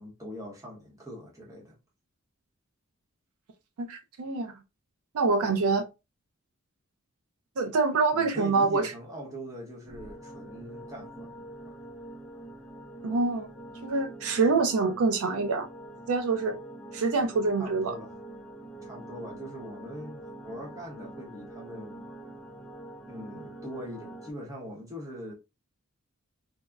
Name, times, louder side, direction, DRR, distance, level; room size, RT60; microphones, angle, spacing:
voice 1, 0.0-1.8 5.4-5.6 8.1-11.3 11.6-11.8 17.6-18.2 18.8-22.0 23.1-25.3, equal, 15° right, 0.8 m, -42 dB
voice 2, 3.8-4.5 5.1-5.8 7.6-8.9 13.0-13.5 13.8-15.7 16.1-16.6 16.9-17.9, right 4 dB, 75° right, 0.4 m, -25 dB
sound 1, 9.9-24.3, right 1 dB, 5° left, 0.4 m, -45 dB
3.4 x 2.0 x 2.3 m
head